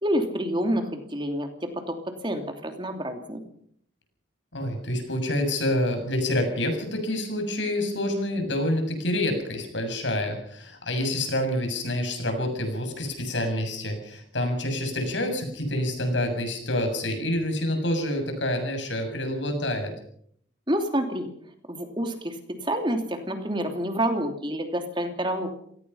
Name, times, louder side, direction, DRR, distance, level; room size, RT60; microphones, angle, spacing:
voice 1, 0.0-3.4 20.7-21.3 21.7-25.5, right 1 dB, 25° right, 5 dB, 3.0 m, -28 dB
voice 2, 4.5-19.9, left 1 dB, 85° left, 5 dB, 7.0 m, -27 dB
27.0 x 18.5 x 5.7 m, 0.64 s
head